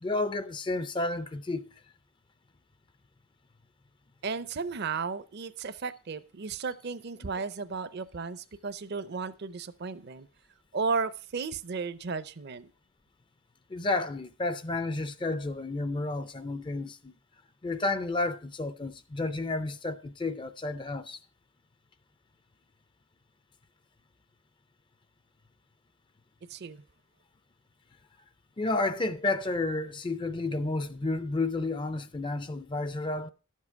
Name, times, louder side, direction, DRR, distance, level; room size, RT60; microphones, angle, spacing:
voice 1, 0.0-1.6 13.7-17.1 17.6-21.2 28.6-33.3, left 2 dB, 20° left, 0.4 m, -31 dB
voice 2, 4.2-10.3 10.7-12.7 26.5-26.8, right 4 dB, 50° right, 0.6 m, -34 dB
11.5 x 7.5 x 4.5 m
head